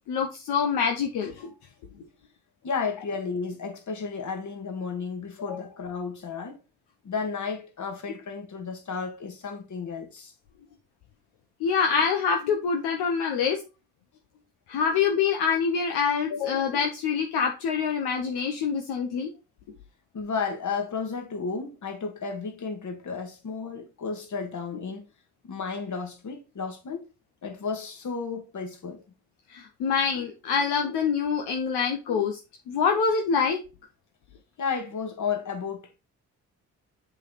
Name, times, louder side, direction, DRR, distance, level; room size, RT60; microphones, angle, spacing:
voice 1, 0.1-1.5 5.5-5.6 11.6-13.6 14.7-19.3 29.5-32.4 32.7-33.6, left 6 dB, 75° left, 0.9 m, -25 dB
voice 2, 2.6-6.6 7.0-10.3 16.6-16.7 20.1-25.1 25.4-27.0 27.4-29.0 34.6-36.0, left 5 dB, 45° left, 1.8 m, -33 dB
7.3 x 3.2 x 4.1 m
hypercardioid pair, 50°, 39 cm